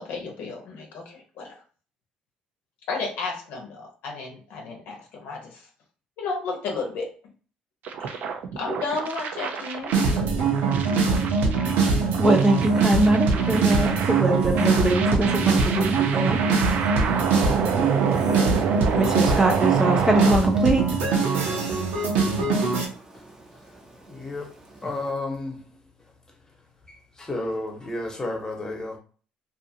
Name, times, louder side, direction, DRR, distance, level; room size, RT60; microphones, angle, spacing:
voice 1, 0.0-1.6 2.9-5.6 6.2-7.1 8.0-8.2 8.6-10.2, left 3 dB, 70° left, 1 dB, 0.8 m, -33 dB
sound 1, 7.8-20.3, right 6 dB, 65° right, 0.4 m, -30 dB
sound 2, 9.9-22.8, right 4 dB, 80° right, 0.8 m, -22 dB
voice 2, 11.8-16.4 18.9-20.8 21.7-21.8 22.1-22.2, right 1 dB, 20° right, 2 dB, 0.6 m, -23 dB
voice 3, 24.0-25.7 27.2-29.0, left 2 dB, 20° left, 1 dB, 1.0 m, -32 dB
2.6 x 2.4 x 2.7 m, 0.39 s
supercardioid pair, 80°, 3 cm